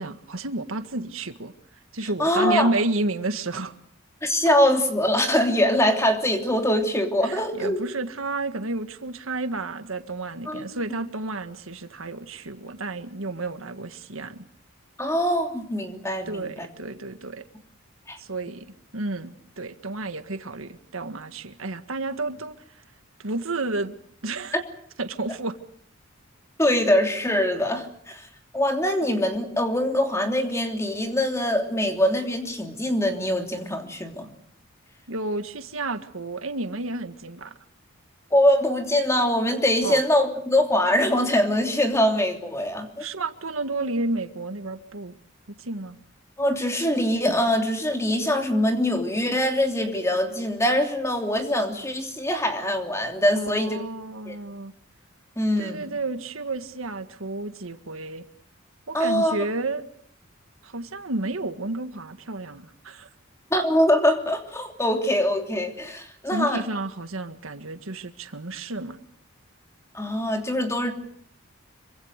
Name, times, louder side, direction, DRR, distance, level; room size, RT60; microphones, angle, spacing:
voice 1, 0.0-1.5 1.9-3.7 7.2-14.5 16.3-17.4 18.2-18.7 18.9-22.8 23.2-24.0 24.2-24.5 25.0-25.6 35.1-37.5 39.8-40.0 43.0-45.1 45.5-46.0 53.3-54.7 55.6-58.2 58.9-59.9 60.6-63.1 66.3-69.0, right 2 dB, 85° right, 9 dB, 1.8 m, -31 dB
voice 2, 2.2-2.7 4.2-7.8 10.5-10.6 15.0-16.5 18.1-18.2 26.6-28.3 28.5-34.3 38.3-43.0 46.4-53.8 54.3-54.4 55.4-55.8 58.9-59.4 63.5-66.6 69.9-70.9, left 1 dB, 15° left, 4 dB, 3.1 m, -23 dB
26.5 x 24.5 x 6.6 m, 0.64 s
head